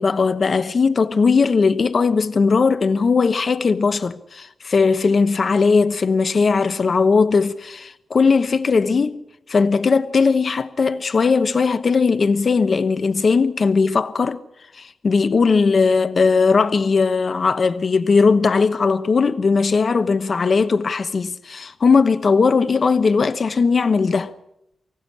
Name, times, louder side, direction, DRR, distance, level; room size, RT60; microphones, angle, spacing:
voice 1, 0.0-9.2 9.5-14.4 14.7-24.3, left 4 dB, 50° left, 1.0 m, -18 dB
25.0 x 15.5 x 8.6 m
wide cardioid pair, 105°, 0 cm